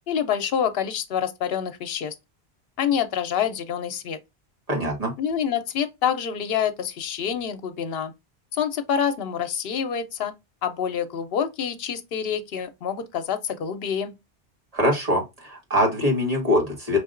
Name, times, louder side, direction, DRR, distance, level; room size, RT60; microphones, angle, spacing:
voice 1, 0.1-2.1 2.8-4.2 5.2-8.1 8.5-10.3 10.6-14.1, left 8 dB, 70° left, 0.9 m, -27 dB
voice 2, 4.7-5.1 14.7-17.0, left 1 dB, 35° right, 1.6 m, -23 dB
5.1 x 2.8 x 2.5 m
omnidirectional pair, 1.1 m